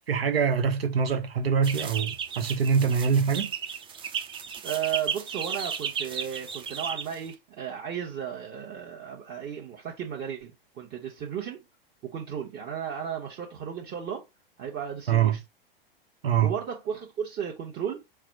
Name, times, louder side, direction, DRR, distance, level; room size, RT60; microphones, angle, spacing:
voice 1, 0.1-3.5 15.1-15.4 16.2-16.5, right 7 dB, 80° right, 1.1 m, -24 dB
sound 1, 1.6-7.3, right 7 dB, 15° right, 0.5 m, -34 dB
voice 2, 4.6-11.6 12.0-14.2 14.6-15.4 16.4-18.0, right 8 dB, 35° right, 1.2 m, -34 dB
4.8 x 2.2 x 4.6 m
hypercardioid pair, 105°, 29 cm